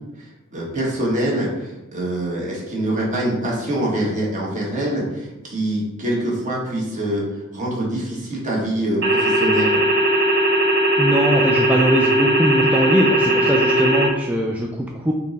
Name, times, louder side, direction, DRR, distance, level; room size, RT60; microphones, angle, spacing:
voice 1, 0.2-9.8, right 1 dB, 40° right, -3 dB, 1.3 m, -24 dB
sound 1, 9.0-14.1, right 1 dB, 55° right, 0.9 m, -18 dB
voice 2, 11.0-15.1, equal, 5° right, -1 dB, 0.3 m, -21 dB
4.3 x 3.1 x 4.0 m, 1.0 s
head